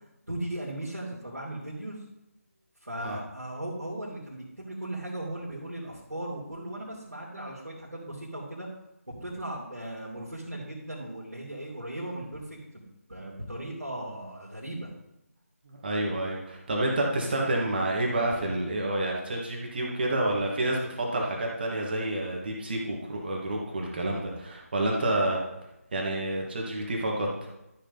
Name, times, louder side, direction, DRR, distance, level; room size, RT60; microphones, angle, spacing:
voice 1, 0.3-2.0 2.8-8.7 9.1-12.8 13.1-14.9, right 1 dB, 90° right, -7 dB, 2.9 m, -37 dB
voice 2, 15.7-25.4 25.9-27.3, right 1 dB, 40° right, -1 dB, 2.0 m, -29 dB
12.5 x 6.6 x 4.0 m, 0.90 s
figure-of-eight pair, 155°, 8 cm